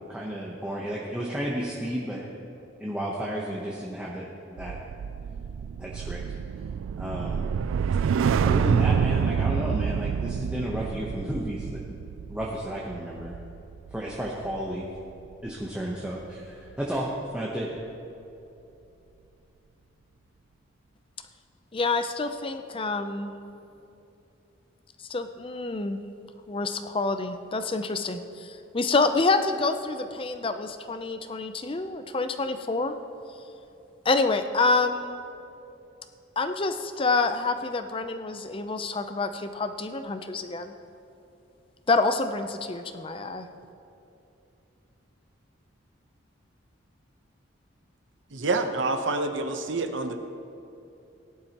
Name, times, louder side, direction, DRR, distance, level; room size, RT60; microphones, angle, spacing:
voice 1, 0.1-2.3 2.8-4.3 4.5-4.8 5.8-6.2 7.0-7.4 8.4-13.4 13.9-14.9 15.4-17.7, equal, 5° right, -4 dB, 0.9 m, -32 dB
sound 1, 4.6-15.0 15.3-15.6, right 6 dB, 90° right, 0.3 m, -28 dB
voice 2, 21.7-23.3 25.1-26.0 26.5-32.9 34.0-35.2 36.4-40.7 41.9-43.5, left 3 dB, 25° left, 9 dB, 0.5 m, -27 dB
voice 3, 48.3-50.2, right 3 dB, 70° right, 7 dB, 0.8 m, -27 dB
17.5 x 11.0 x 3.0 m, 2.8 s
head